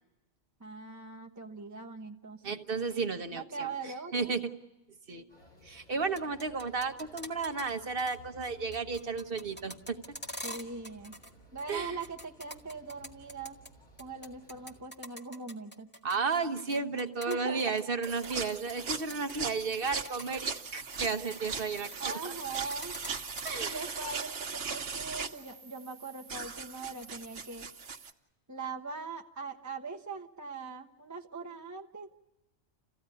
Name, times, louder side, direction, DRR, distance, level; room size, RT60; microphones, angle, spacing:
voice 1, 0.6-2.6 3.3-4.3 10.4-11.2 11.5-13.6 14.0-15.9 16.9-17.6 22.0-23.0 23.6-27.7 28.5-32.1, right 4 dB, 15° right, 2 dB, 1.0 m, -41 dB
voice 2, 2.4-4.5 5.1-5.3 5.6-10.0 11.7-12.0 16.0-22.3 23.4-23.8, right 4 dB, 50° right, 7 dB, 1.3 m, -33 dB
sound 1, 5.3-14.8, equal, 40° left, 6.1 m, -57 dB
sound 2, 6.0-7.7 8.0-8.2 8.4-11.3 11.6-13.7 14.0-18.7 19.0-19.3 19.7-22.0 22.2-23.5, equal, 10° left, 1.9 m, -44 dB
sound 3, 18.0-28.1, right 5 dB, 75° right, 1.5 m, -39 dB
29.0 x 16.0 x 9.8 m, 1.0 s
omnidirectional pair, 1.2 m